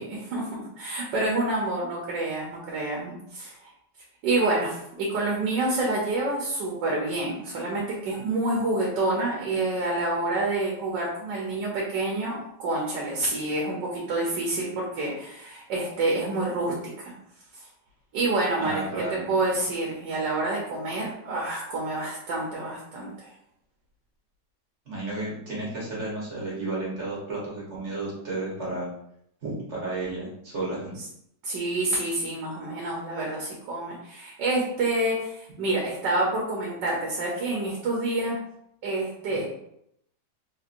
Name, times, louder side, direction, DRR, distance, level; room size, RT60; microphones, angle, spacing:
voice 1, 0.0-3.7 4.2-16.7 17.0-17.1 17.5-17.6 18.1-23.3 31.4-38.4 38.8-39.4, right 2 dB, 80° right, -2 dB, 1.4 m, -28 dB
voice 2, 18.5-19.4 24.9-28.9 29.4-31.0 39.3-39.4, right 2 dB, 45° right, -6 dB, 1.4 m, -32 dB
3.7 x 2.8 x 2.5 m, 0.74 s
omnidirectional pair, 1.9 m